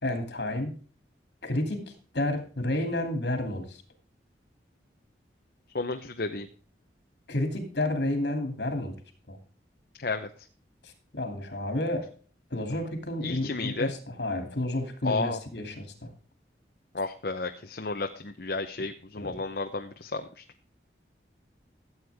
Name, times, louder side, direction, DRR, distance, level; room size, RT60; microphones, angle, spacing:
voice 1, 0.0-0.7 1.4-1.8 2.1-3.8 7.3-8.9 9.3-9.4 10.8-12.1 12.5-16.1 19.2-19.4, left 1 dB, 75° left, 6 dB, 2.8 m, -30 dB
voice 2, 5.7-6.5 10.0-10.3 13.2-13.9 15.0-15.4 16.9-20.4, left 3 dB, 60° left, 6 dB, 0.8 m, -32 dB
14.0 x 8.1 x 3.5 m, 0.41 s
head